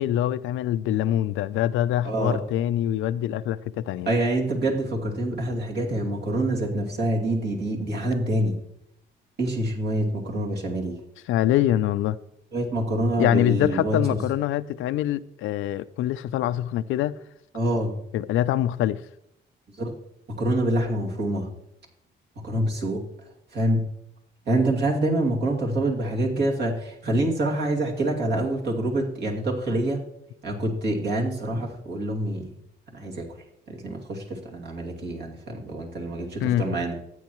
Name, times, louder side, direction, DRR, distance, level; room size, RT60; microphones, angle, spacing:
voice 1, 0.0-4.1 11.3-12.2 13.2-17.1 18.1-19.0 36.4-36.7, left 12 dB, 85° left, 0.4 m, -24 dB
voice 2, 2.0-2.4 4.1-8.6 9.4-11.0 12.5-14.0 17.5-18.0 19.8-19.9 20.3-21.5 22.4-23.0 23.5-23.9 24.5-30.0 30.4-32.5 32.9-33.3 33.7-37.0, right 1 dB, 60° right, 2.5 m, -26 dB
14.0 x 8.6 x 3.1 m
cardioid pair, 90°, 20 cm